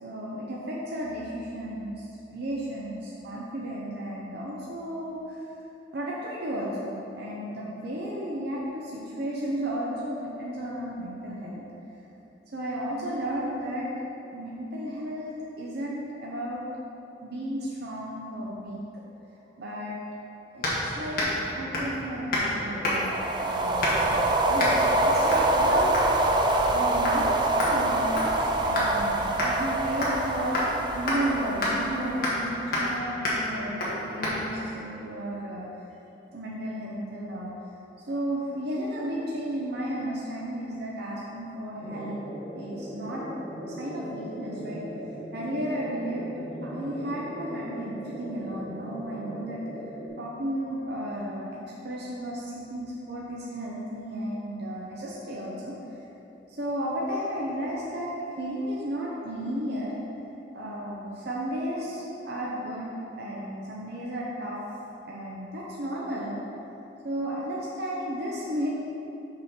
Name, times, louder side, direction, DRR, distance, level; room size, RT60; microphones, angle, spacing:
voice 1, 0.0-5.4 5.9-11.6 12.5-13.9 14.3-16.6 17.2-18.8 19.6-20.0 20.5-25.9 26.7-30.6 30.9-35.7 36.3-37.5 38.1-42.2 42.5-43.2 43.8-44.9 45.3-46.3 46.6-49.6 50.2-56.0 56.5-58.1 58.4-59.9 60.5-64.6 65.1-66.4 67.0-68.7, right 1 dB, 60° right, -5 dB, 0.8 m, -33 dB
sound 1, 20.6-20.8 21.1-21.4 21.7-22.0 22.3-22.5 22.8-23.2 23.8-24.1 24.6-24.8 25.3-25.5 25.9-26.1 26.5-26.8 27.0-27.2 27.6-28.9 29.4-29.5 30.0-30.2 30.5-30.7 31.1-31.2 31.6-31.7 32.2-32.4 32.7-32.9 33.2-33.4 33.8-33.9 34.2-34.4, left 1 dB, 55° left, 1.6 m, -28 dB
sound 2, 23.0-32.5, right 2 dB, 25° right, 0.4 m, -25 dB
sound 3, 41.8-50.1, equal, 25° left, 1.5 m, -39 dB
6.1 x 6.1 x 4.4 m, 3.0 s
head